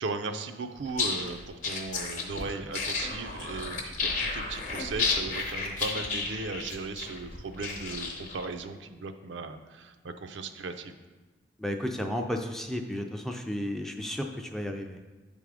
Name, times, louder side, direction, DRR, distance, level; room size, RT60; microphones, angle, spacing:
voice 1, 0.0-10.9, right 3 dB, 75° right, 7 dB, 0.5 m, -37 dB
sound 1, 0.9-8.5, left 4 dB, 40° left, 0.9 m, -32 dB
voice 2, 11.6-15.0, left 1 dB, ahead, 3 dB, 0.3 m, -33 dB
8.0 x 3.6 x 4.8 m, 1.3 s
head